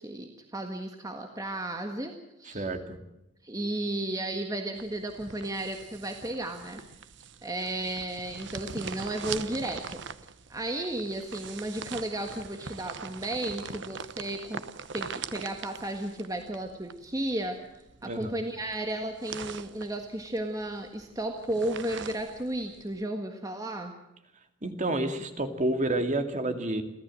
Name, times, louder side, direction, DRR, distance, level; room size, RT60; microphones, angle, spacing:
voice 1, 0.0-2.1 2.4-2.7 3.4-6.8 7.4-10.0 10.5-14.6 14.9-17.6 18.0-23.9, right 1 dB, 20° right, 4 dB, 1.6 m, -34 dB
voice 2, 2.5-3.0 18.0-18.3 24.6-26.8, right 1 dB, 35° right, 7 dB, 2.3 m, -29 dB
sound 1, 4.8-23.0, right 5 dB, 60° right, 1.0 m, -43 dB
29.5 x 13.5 x 7.7 m, 0.90 s
head